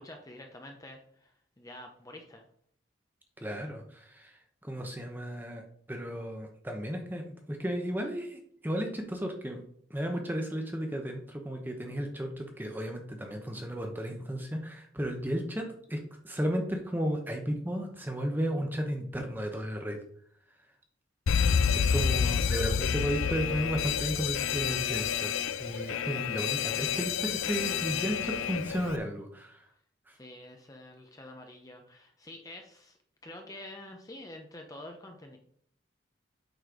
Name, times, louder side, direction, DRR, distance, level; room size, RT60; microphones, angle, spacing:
voice 1, 0.0-2.5 22.2-22.4 30.2-33.0 33.2-35.4, left 1 dB, 15° left, 3 dB, 0.7 m, -47 dB
voice 2, 3.4-5.6 5.9-9.6 9.9-20.0 21.7-25.3 25.6-29.6 30.1-30.2, equal, 10° right, 3 dB, 0.9 m, -34 dB
Alarm, 21.3-29.0, left 7 dB, 90° left, 0.4 m, -29 dB
8.1 x 4.3 x 5.0 m, 0.63 s
head